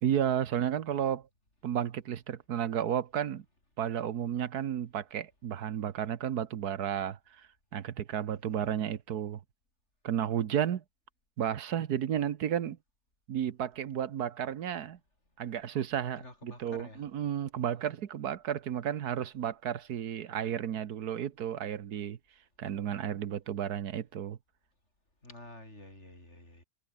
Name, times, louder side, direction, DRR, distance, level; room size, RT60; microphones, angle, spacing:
voice 1, 0.0-1.3 1.6-3.4 3.8-9.4 10.0-10.8 11.4-12.8 13.3-15.0 15.4-22.2 22.6-24.4, right 9 dB, 80° right, 1.6 m, -32 dB
voice 2, 8.4-8.8 16.2-17.0 25.2-26.6, left 1 dB, 45° left, 7.3 m, -50 dB
omnidirectional pair, 1.6 m